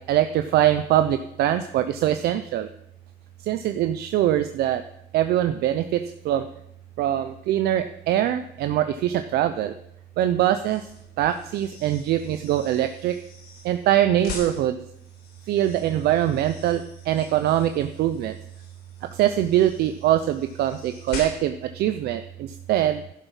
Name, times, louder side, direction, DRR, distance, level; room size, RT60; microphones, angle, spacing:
voice 1, 0.0-2.7 3.4-4.8 5.1-6.5 7.0-9.7 10.2-10.9 11.2-13.2 13.6-14.8 15.5-18.4 19.0-23.0, right 12 dB, 70° right, 9 dB, 0.6 m, -23 dB
sound 1, 10.6-21.7, left 5 dB, 90° left, 4.1 m, -43 dB
11.5 x 7.1 x 5.6 m, 0.75 s
cardioid pair, 110°, 17 cm